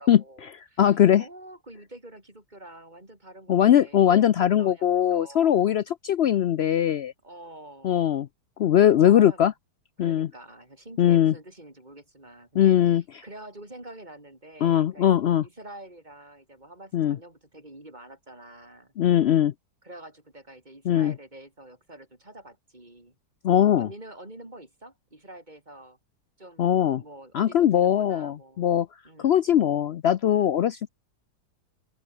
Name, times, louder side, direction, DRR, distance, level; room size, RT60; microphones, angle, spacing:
voice 1, 0.0-5.8 7.2-8.0 8.8-9.5 10.0-15.1 15.4-18.9 19.8-23.2 23.8-26.0 26.4-28.7 29.0-29.3, right 1 dB, 25° right, 5.0 m, -47 dB
voice 2, 0.8-1.2 3.5-7.1 7.8-8.3 8.6-9.5 10.0-10.3 11.0-11.3 12.6-13.0 14.6-15.4 16.9-17.2 19.0-19.5 20.9-21.1 23.4-23.9 26.6-27.0 27.3-28.9 29.2-30.9, left 10 dB, 80° left, 0.5 m, -20 dB
open air
omnidirectional pair, 1.8 m